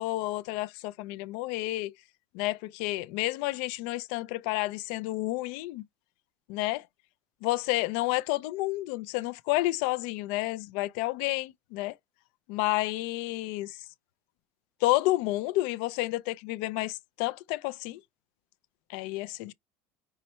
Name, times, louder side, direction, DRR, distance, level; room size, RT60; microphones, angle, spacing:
voice 1, 0.0-1.9 2.3-5.8 6.5-6.8 7.4-12.0 12.5-13.8 14.8-18.0 18.9-19.5, left 19 dB, 65° left, 0.4 m, -30 dB
5.5 x 3.1 x 3.0 m
cardioid pair, 175°, 6 cm